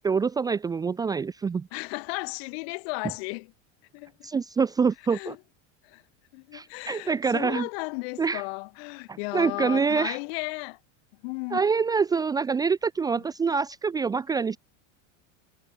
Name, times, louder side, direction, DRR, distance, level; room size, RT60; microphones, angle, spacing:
voice 1, 0.0-1.7 4.2-5.3 6.5-7.7 8.2-8.4 9.1-10.2 11.5-14.6, right 5 dB, 10° right, 0.9 m, -26 dB
voice 2, 1.7-3.5 3.9-4.3 5.1-5.4 5.8-6.0 6.3-10.8 11.2-11.6 13.2-13.3, left 31 dB, 50° left, 4.1 m, -35 dB
supercardioid pair, 175°, 38 cm